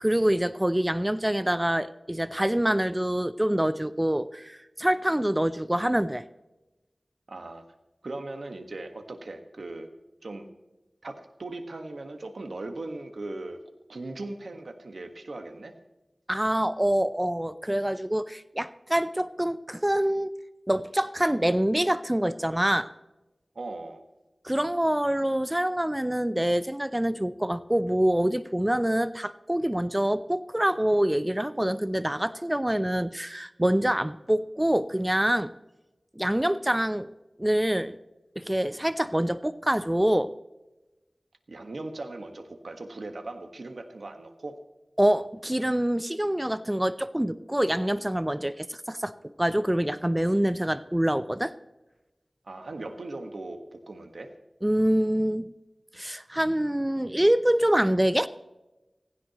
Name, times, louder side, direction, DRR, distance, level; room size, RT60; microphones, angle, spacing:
voice 1, 0.0-6.3 16.3-20.3 20.7-22.9 24.4-35.5 36.2-37.1 37.4-38.0 38.4-40.3 45.0-51.5 54.6-55.5 55.9-58.3, right 1 dB, 15° right, 14 dB, 0.5 m, -25 dB
voice 2, 7.3-7.6 8.0-9.9 10.2-10.5 11.0-13.6 13.9-15.7 23.5-24.0 41.5-44.6 52.4-54.3, right 2 dB, 80° right, 7 dB, 1.5 m, -39 dB
16.5 x 15.5 x 3.0 m, 1.1 s
wide cardioid pair, 45°, 0 cm